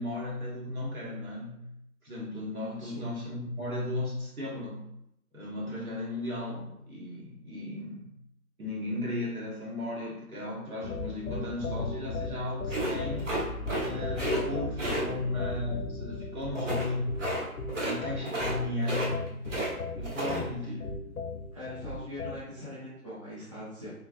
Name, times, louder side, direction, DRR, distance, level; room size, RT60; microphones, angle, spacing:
voice 1, 0.0-1.6 2.0-4.8 5.3-8.1 8.6-13.3 13.8-17.0 17.8-19.3 19.9-21.2, left 2 dB, 75° right, -4 dB, 1.5 m, -35 dB
sound 1, 10.8-22.4, left 3 dB, 90° left, 0.6 m, -37 dB
sound 2, 12.7-13.9 14.1-14.4 14.8-15.0 16.5-16.9 17.2-17.4 17.7-18.0 18.2-18.6 18.8-19.7 20.0-20.4, right 1 dB, 55° right, 1.1 m, -32 dB
voice 2, 16.5-16.8 20.2-20.5 21.5-23.9, equal, 20° right, -10 dB, 0.6 m, -41 dB
3.3 x 3.0 x 2.5 m, 0.77 s
figure-of-eight pair, 155°, 44 cm